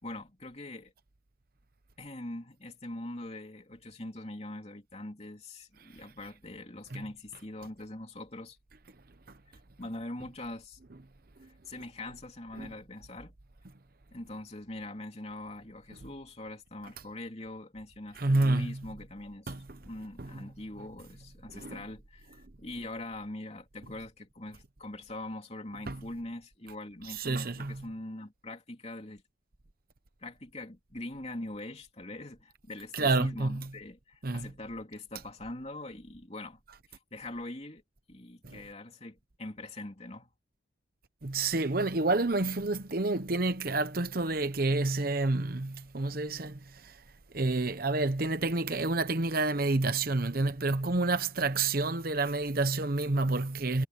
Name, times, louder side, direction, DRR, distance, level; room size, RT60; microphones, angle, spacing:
voice 1, 0.0-0.9 2.0-8.6 9.5-10.8 11.4-13.3 14.1-29.2 30.2-36.6 36.9-37.8 38.1-40.3, left 1 dB, 30° left, 3.1 m, -43 dB
voice 2, 18.2-18.8 19.5-19.6 20.2-20.4 21.5-21.8 25.9-26.0 27.1-27.8 32.9-33.7 34.2-34.5 38.4-38.6 41.2-47.0 47.3-53.8, right 2 dB, 50° right, 1.0 m, -29 dB
head